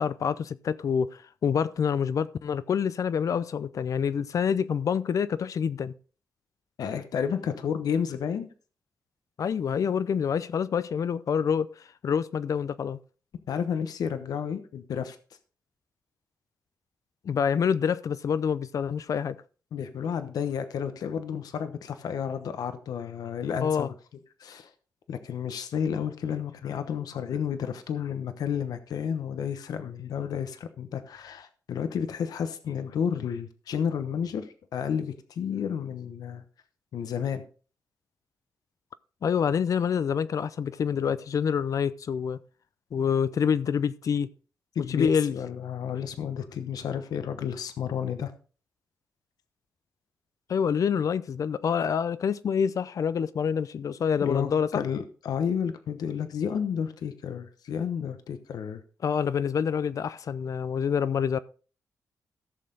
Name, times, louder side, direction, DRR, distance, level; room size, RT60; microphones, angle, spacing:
voice 1, 0.0-5.9 9.4-11.7 12.0-13.0 17.2-19.4 23.6-23.9 39.2-42.4 42.9-44.3 44.9-45.4 50.5-54.8 59.0-61.4, left 7 dB, 60° left, 0.6 m, -27 dB
voice 2, 6.8-8.5 13.5-15.2 19.7-23.9 24.4-24.7 25.1-36.4 36.9-37.4 44.7-48.3 54.2-58.8, left 7 dB, 80° left, 1.0 m, -31 dB
15.0 x 6.6 x 3.9 m
cardioid pair, 100°, 6 cm